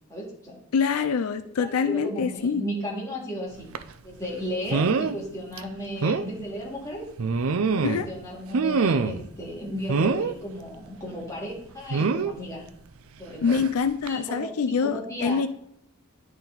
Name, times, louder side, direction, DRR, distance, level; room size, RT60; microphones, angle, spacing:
voice 1, 0.1-0.5 1.4-3.7 4.0-7.1 7.6-12.6 13.2-13.6 14.1-15.4, equal, 15° left, -5 dB, 2.5 m, -35 dB
voice 2, 0.7-2.6 7.8-8.1 13.4-15.5, left 6 dB, 80° left, 10 dB, 0.4 m, -25 dB
sound 1, 3.7-3.9 4.7-5.2 5.6-5.7 6.0-6.3 7.2-8.1 8.5-9.3 9.9-10.3 11.9-12.3 13.5-13.7 14.1-14.2, right 4 dB, 75° right, 0.5 m, -24 dB
10.0 x 4.3 x 4.0 m, 0.72 s
head